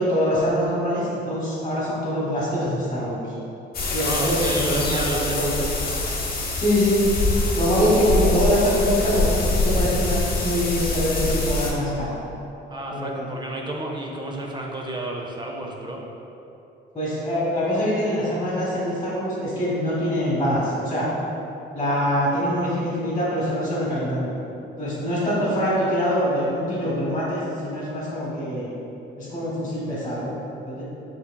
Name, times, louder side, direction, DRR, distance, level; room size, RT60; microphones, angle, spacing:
voice 1, 0.0-3.2 3.9-5.6 6.5-7.0 7.6-12.2 12.9-13.3 16.9-21.1 21.7-24.3 24.8-28.7 29.2-30.3 30.7-30.8, equal, 25° left, -8 dB, 1.0 m, -24 dB
sound 1, 3.7-11.7, left 2 dB, 50° left, 0.8 m, -24 dB
voice 2, 4.0-5.4 12.7-16.0, right 1 dB, 25° right, -1 dB, 0.5 m, -31 dB
5.6 x 3.4 x 2.2 m, 2.9 s
cardioid pair, 90°, 20 cm